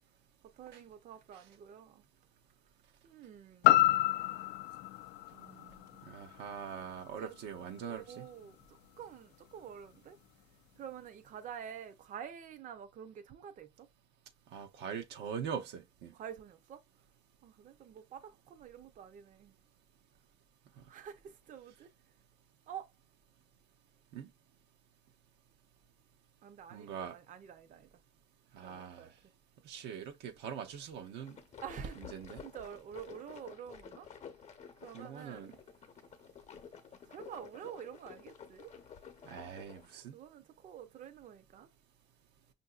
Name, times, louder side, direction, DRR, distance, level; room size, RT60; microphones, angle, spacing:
voice 1, 0.6-2.1 3.0-3.8 5.3-6.0 7.2-7.4 7.9-10.2 10.8-13.9 16.1-16.8 17.4-19.5 20.9-21.9 22.7-22.9 26.4-28.0 28.6-29.1 31.6-34.1 34.8-35.6 37.1-38.8 40.1-41.7, right 8 dB, 50° right, 0.6 m, -48 dB
sound 1, 3.6-7.7 8.2-8.3, left 16 dB, 90° left, 0.4 m, -30 dB
voice 2, 6.0-8.3 14.5-16.1 24.1-24.3 26.7-27.2 28.5-29.1 29.6-31.4 32.1-32.4 34.9-35.6 39.2-40.2, right 7 dB, 85° right, 0.7 m, -42 dB
sound 2, 31.0-39.9, left 7 dB, 45° left, 0.8 m, -52 dB
5.5 x 2.6 x 2.3 m
cardioid pair, 110°, 17 cm